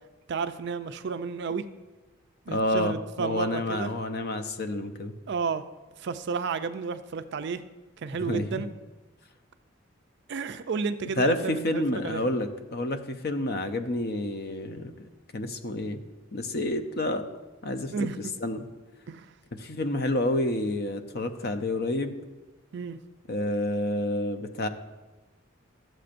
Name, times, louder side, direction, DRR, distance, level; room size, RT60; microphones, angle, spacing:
voice 1, 0.3-1.7 2.5-3.9 5.3-5.6 6.0-7.6 8.0-8.7 10.3-12.2 17.9-18.3 19.1-19.3 22.7-23.0, right 5 dB, 50° right, 11 dB, 0.4 m, -32 dB
voice 2, 2.5-5.1 8.2-8.6 11.2-15.1 15.3-16.0 16.3-17.2 17.6-17.9 18.4-18.6 19.5-22.1 23.3-24.7, left 1 dB, 45° left, 8 dB, 0.6 m, -29 dB
13.0 x 7.6 x 2.5 m, 1.2 s
head